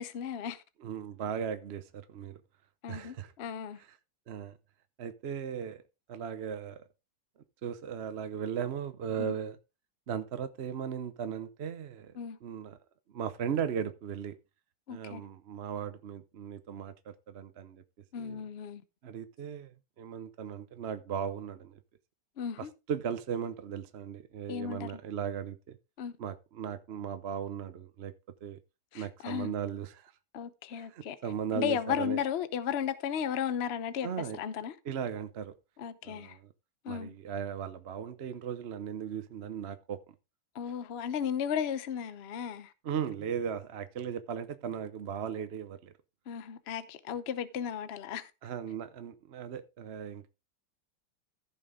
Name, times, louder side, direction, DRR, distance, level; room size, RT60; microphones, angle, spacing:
voice 1, 0.0-0.6 2.8-3.8 9.2-9.4 12.2-12.4 14.9-15.2 18.1-18.8 22.4-22.7 24.5-24.9 26.0-26.1 28.9-29.5 30.3-31.2 31.5-34.1 34.4-34.8 35.8-36.4 36.8-37.1 40.5-42.7 46.3-48.3, left 8 dB, 50° left, 0.8 m, -35 dB
voice 2, 0.8-2.4 2.9-3.3 3.8-4.0 4.3-4.6 5.0-5.8 6.1-6.8 7.6-9.6 10.1-12.1 12.4-12.8 13.1-14.4 14.9-17.8 18.2-18.4 19.0-21.8 22.6-25.8 26.2-28.1 28.4-28.6 28.9-30.1 30.7-32.2 34.0-34.4 34.8-35.5 36.0-36.5 36.9-40.0 42.8-45.9 48.4-50.3, right 8 dB, 55° right, 0.8 m, -37 dB
15.0 x 6.1 x 3.6 m
omnidirectional pair, 1.9 m